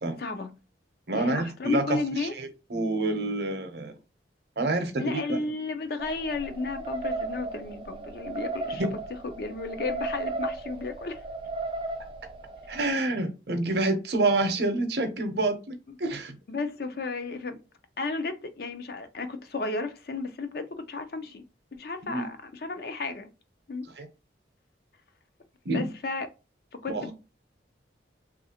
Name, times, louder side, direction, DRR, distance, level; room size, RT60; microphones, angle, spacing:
voice 1, 0.2-0.5 1.1-2.4 5.0-8.8 9.4-11.2 15.9-16.0 16.5-17.6 18.0-21.4 21.7-23.3 23.7-23.9 25.7-26.3 26.7-27.1, left 3 dB, 55° left, 0.5 m, -33 dB
voice 2, 1.1-3.9 4.6-5.4 8.8-8.9 12.7-16.4 22.0-22.3 24.0-24.1 25.6-25.9 26.9-27.1, right 2 dB, 60° right, 0.7 m, -28 dB
sound 1, 6.0-12.9, right 2 dB, 25° right, 0.3 m, -35 dB
3.1 x 2.4 x 2.8 m
head